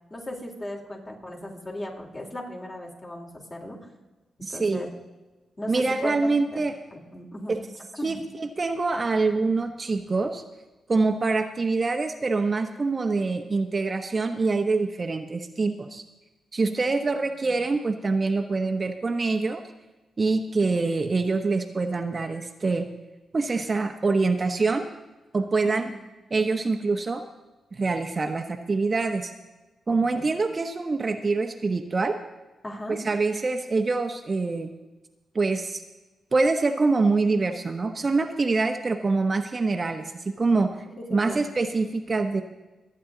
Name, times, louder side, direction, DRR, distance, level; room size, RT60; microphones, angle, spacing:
voice 1, 0.1-3.8 4.5-4.9 5.6-6.6 6.9-7.6 7.9-8.1 17.4-17.5 25.6-25.8 29.9-30.2 32.6-33.0 41.0-41.4, left 1 dB, 30° left, -1 dB, 3.9 m, -36 dB
voice 2, 4.4-4.8 5.7-6.7 7.5-7.6 8.0-10.4 10.9-16.0 16.5-19.6 20.2-22.9 23.3-24.9 25.3-25.9 26.3-27.2 27.7-29.3 29.9-32.2 32.9-34.7 35.3-35.8 36.3-40.7 41.1-42.4, right 3 dB, 40° right, 5 dB, 1.0 m, -25 dB
23.5 x 8.8 x 3.9 m, 1.1 s
cardioid pair, 65°, 0 cm